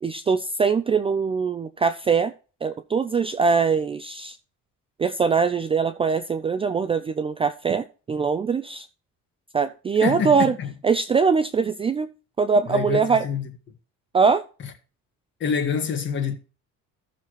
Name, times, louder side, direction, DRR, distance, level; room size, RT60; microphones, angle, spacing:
voice 1, 0.0-2.3 2.6-4.4 5.0-8.9 9.5-10.5 10.8-12.1 12.4-13.2 14.1-14.4, right 5 dB, 20° right, 0.4 m, -22 dB
voice 2, 10.0-10.7 12.7-13.5 14.6-14.7 15.4-16.4, left 6 dB, 35° left, 1.7 m, -26 dB
14.0 x 6.7 x 3.0 m
cardioid pair, 175°, 32 cm